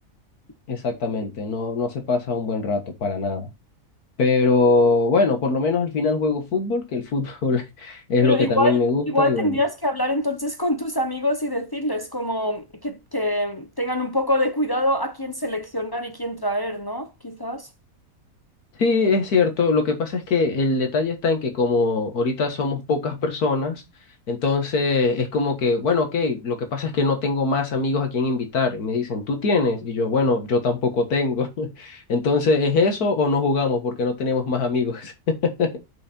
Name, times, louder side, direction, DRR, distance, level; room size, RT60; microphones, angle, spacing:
voice 1, 0.7-3.5 4.2-9.6 18.8-23.8 24.3-35.8, left 3 dB, 80° left, 2.0 m, -22 dB
voice 2, 8.2-17.7, left 1 dB, 20° left, 0.6 m, -25 dB
6.5 x 6.3 x 4.3 m
omnidirectional pair, 1.6 m